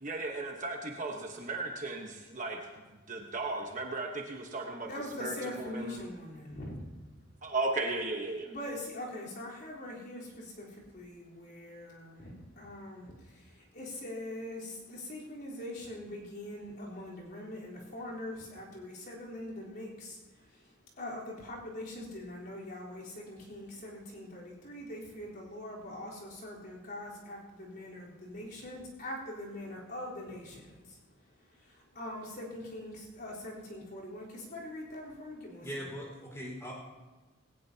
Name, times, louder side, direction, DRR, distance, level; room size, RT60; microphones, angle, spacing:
voice 1, 0.0-2.6 3.1-4.9 5.1-6.0 7.4-8.5, right 2 dB, 35° right, 1 dB, 1.2 m, -35 dB
voice 2, 4.8-6.9 8.5-31.0 31.3-35.9, left 1 dB, 45° left, -5 dB, 3.9 m, -43 dB
voice 3, 35.6-36.7, equal, 15° left, -2 dB, 4.6 m, -40 dB
19.0 x 18.0 x 2.9 m, 1.2 s
head